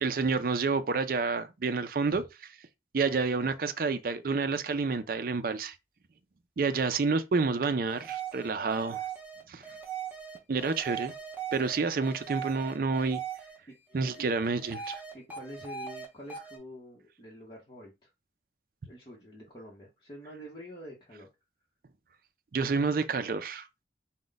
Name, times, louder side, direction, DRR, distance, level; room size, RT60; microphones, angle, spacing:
voice 1, 0.0-2.5 2.9-5.8 6.6-9.1 9.5-9.6 10.5-11.1 11.5-13.2 13.9-15.0 22.5-23.7, right 4 dB, 50° right, 0.4 m, -29 dB
sound 1, 7.9-13.6 13.9-16.0 16.3-16.6, right 8 dB, 10° right, 1.0 m, -40 dB
voice 2, 13.7-14.3 15.1-18.1 18.8-21.3, equal, 25° left, 1.0 m, -47 dB
5.0 x 2.2 x 3.9 m
head